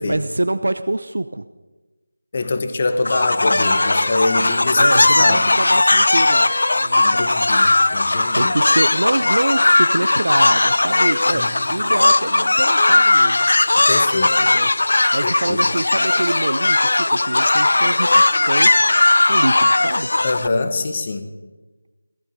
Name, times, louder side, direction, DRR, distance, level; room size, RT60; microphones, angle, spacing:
voice 1, 0.0-1.5 4.8-7.6 7.9-13.5 13.9-14.0 14.4-20.1, right 2 dB, 85° right, 11 dB, 0.7 m, -25 dB
voice 2, 2.3-5.5 6.9-8.5 11.3-11.6 13.7-14.4 15.2-15.6 20.2-21.3, left 3 dB, 30° left, 8 dB, 1.3 m, -24 dB
sound 1, 3.1-20.5, left 2 dB, 65° left, 0.6 m, -17 dB
19.0 x 14.0 x 5.3 m, 1.2 s
figure-of-eight pair, 175°, 0 cm